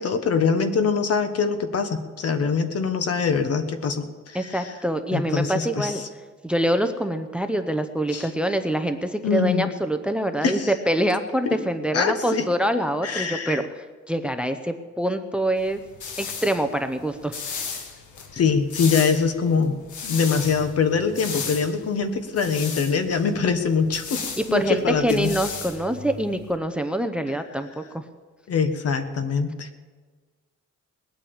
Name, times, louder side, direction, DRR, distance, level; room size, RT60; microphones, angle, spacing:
voice 1, 0.0-4.7 5.1-6.1 8.1-8.3 9.2-9.7 10.4-10.7 11.5-11.6 11.9-12.5 13.0-13.6 18.3-19.7 20.0-24.2 24.5-25.3 28.5-29.8, left 5 dB, 55° left, 8 dB, 1.3 m, -23 dB
voice 2, 4.3-6.0 6.4-15.8 16.2-17.7 24.4-28.0, right 1 dB, 5° right, 9 dB, 0.6 m, -25 dB
sound 1, 15.6-26.6, left 5 dB, 85° left, 1.8 m, -36 dB
20.5 x 8.9 x 7.1 m, 1.4 s
wide cardioid pair, 145°, 29 cm